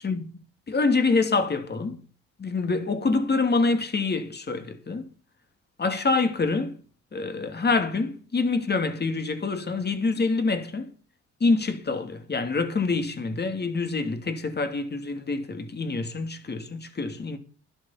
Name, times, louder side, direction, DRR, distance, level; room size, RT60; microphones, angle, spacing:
voice 1, 0.7-2.0 2.4-5.1 5.8-6.8 7.1-10.9 11.4-17.4, left 3 dB, 35° left, 2.8 m, -26 dB
12.0 x 11.5 x 5.7 m
cardioid pair, 90°, 30 cm